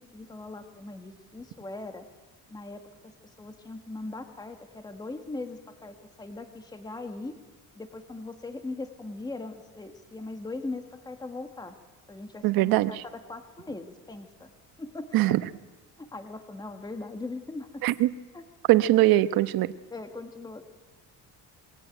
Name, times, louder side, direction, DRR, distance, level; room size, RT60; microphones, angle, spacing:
voice 1, 0.0-2.0 2.5-7.4 7.7-11.7 12.1-14.5 14.8-15.4 16.0-17.8 18.3-18.4 19.9-20.7, left 2 dB, 10° left, 6 dB, 1.6 m, -40 dB
voice 2, 12.4-13.0 15.1-15.4 17.8-18.1 18.7-19.7, right 16 dB, 85° right, 14 dB, 1.0 m, -21 dB
28.0 x 22.0 x 9.1 m, 1.2 s
cardioid pair, 160°, 35 cm